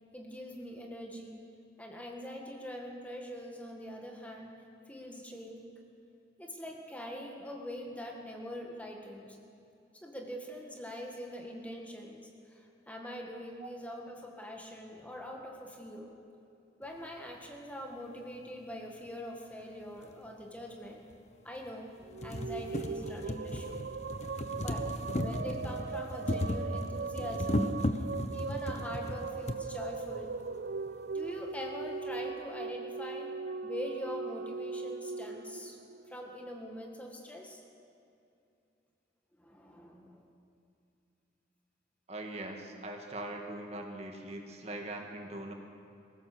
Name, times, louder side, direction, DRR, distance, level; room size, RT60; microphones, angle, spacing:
voice 1, 0.1-1.4 1.8-4.6 4.9-5.8 6.4-9.4 10.0-16.1 16.8-21.0 21.4-21.9 22.2-23.9 24.6-30.3 31.1-33.3 33.6-35.8 36.1-37.6 39.4-40.3, equal, 10° left, 0 dB, 1.9 m, -43 dB
sound 1, 20.0-20.1 21.1-21.2 21.6-21.7 22.0-29.6 30.5-30.6 30.9-31.0, left 1 dB, 40° left, 1.0 m, -35 dB
sound 2, 22.0-36.5, right 5 dB, 60° right, 0.4 m, -39 dB
voice 2, 42.1-45.5, right 1 dB, 35° right, 2 dB, 1.9 m, -41 dB
21.5 x 17.5 x 6.9 m, 2.6 s
head